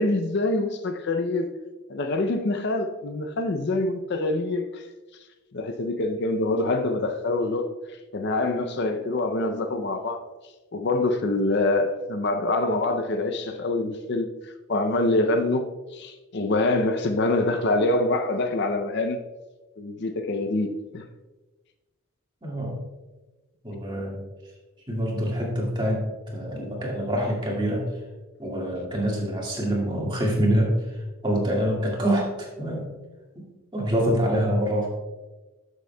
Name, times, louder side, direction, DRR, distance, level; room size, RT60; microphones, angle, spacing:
voice 1, 0.0-1.6 1.9-4.8 5.5-7.7 8.1-10.2 10.7-19.2 19.8-21.0, left 2 dB, 50° left, 0.5 m, -25 dB
voice 2, 22.4-22.7 23.6-24.2 24.9-26.0 26.3-27.9 28.4-32.9 33.3-33.4 33.7-34.9, equal, 20° right, 1.8 m, -25 dB
12.5 x 6.4 x 2.2 m
head